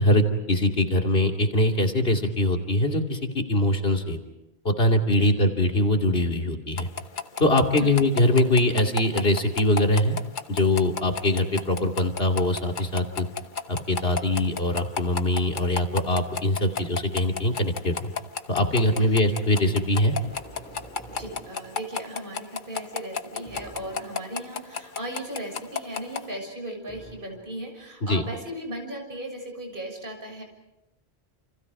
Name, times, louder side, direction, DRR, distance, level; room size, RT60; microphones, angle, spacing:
voice 1, 0.0-3.2 3.5-4.2 4.6-6.9 7.4-10.2 10.5-13.3 13.7-18.1 18.5-20.1 28.0-28.2, left 1 dB, 65° left, 2 dB, 3.0 m, -22 dB
sound 1, 6.8-26.2, left 6 dB, 50° left, 1.2 m, -31 dB
sound 2, 20.2-22.2 23.4-24.6 26.9-27.9, right 1 dB, 10° left, 7.4 m, -47 dB
voice 2, 21.1-30.4, right 1 dB, 55° right, 2 dB, 6.8 m, -37 dB
29.5 x 29.0 x 4.9 m, 0.95 s
omnidirectional pair, 1.1 m